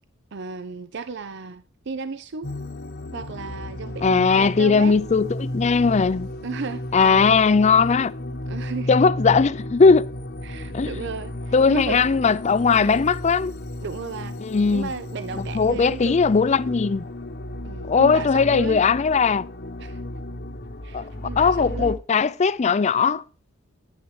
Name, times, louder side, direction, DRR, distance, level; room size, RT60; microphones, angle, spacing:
voice 1, 0.3-2.5 3.1-5.0 6.4-7.3 8.5-8.9 10.4-12.1 12.7-13.1 13.8-14.4 14.7-16.2 17.6-18.8 19.8-20.0 20.8-22.0, right 4 dB, 60° right, 0.6 m, -34 dB
sound 1, 2.4-22.0, left 1 dB, 50° left, 1.1 m, -33 dB
voice 2, 4.0-6.3 6.9-8.1 8.9-10.1 10.7-10.9 11.5-13.5 14.4-14.9 15.4-17.1 17.9-19.4 20.9-23.2, left 5 dB, 35° left, 0.4 m, -19 dB
10.0 x 10.0 x 3.2 m
head